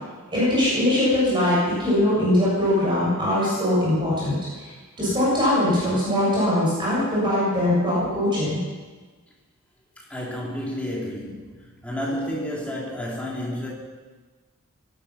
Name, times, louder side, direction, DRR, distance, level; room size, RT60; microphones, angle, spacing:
voice 1, 0.3-4.7 5.0-8.6, left 1 dB, 20° right, -7 dB, 6.9 m, -21 dB
voice 2, 10.1-11.6 11.8-13.7, equal, 5° left, -4 dB, 3.5 m, -30 dB
18.0 x 12.5 x 5.9 m, 1.4 s
head